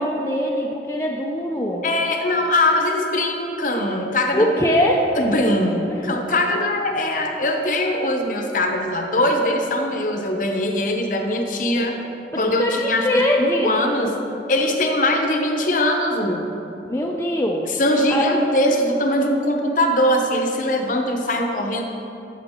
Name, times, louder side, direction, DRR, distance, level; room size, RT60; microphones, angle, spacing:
voice 1, 0.0-1.8 4.3-5.2 5.6-6.0 12.3-13.7 16.8-17.8 18.1-18.2, left 1 dB, 15° left, -1 dB, 0.5 m, -22 dB
voice 2, 1.8-4.5 5.2-12.0 12.3-13.1 13.4-14.1 14.5-16.5 17.8-21.8, left 1 dB, 45° left, 3 dB, 0.8 m, -21 dB
13.5 x 6.0 x 3.6 m, 2.9 s
head